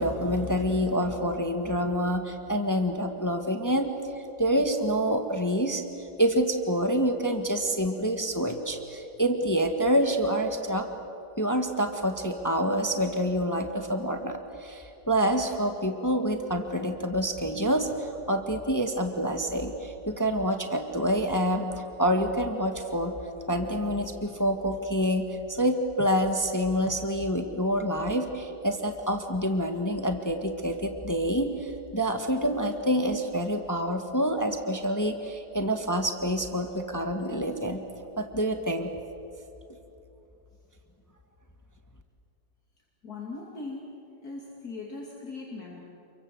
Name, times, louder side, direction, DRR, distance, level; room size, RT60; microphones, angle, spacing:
voice 1, 0.0-3.9 4.4-5.8 6.2-10.9 11.4-23.2 23.5-37.8 38.2-38.9, equal, 10° left, 5 dB, 1.4 m, -27 dB
voice 2, 43.0-43.9 44.2-45.8, left 3 dB, 55° left, -2 dB, 3.2 m, -39 dB
29.0 x 23.5 x 7.8 m, 2.8 s
omnidirectional pair, 2.0 m